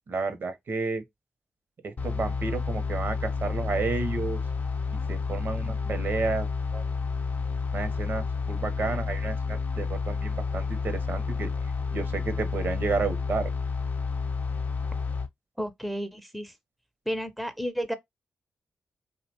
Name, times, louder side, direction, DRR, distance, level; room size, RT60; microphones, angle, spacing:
voice 1, 0.1-1.0 1.8-4.4 5.1-6.8 7.7-11.5 11.9-13.5, right 4 dB, 60° right, 0.7 m, -31 dB
sound 1, 2.0-15.3, left 4 dB, 45° left, 0.6 m, -30 dB
voice 2, 5.6-5.9 15.6-16.5 17.1-17.9, equal, ahead, 0.5 m, -32 dB
2.7 x 2.1 x 2.7 m
supercardioid pair, 50°, 4 cm